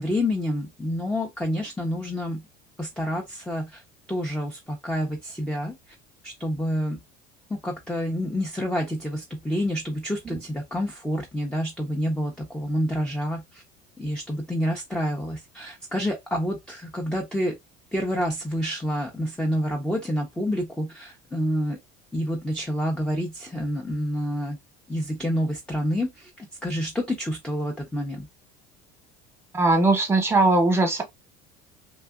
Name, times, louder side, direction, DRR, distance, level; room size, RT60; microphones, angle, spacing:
voice 1, 0.0-2.4 2.8-3.8 4.1-5.9 6.2-7.0 7.5-13.6 14.0-17.5 17.9-21.8 22.1-24.6 24.9-28.3, equal, 5° left, 0.5 m, -28 dB
voice 2, 29.5-31.0, right 2 dB, 10° right, 1.0 m, -20 dB
2.8 x 2.4 x 2.3 m
supercardioid pair, 100°, 21 cm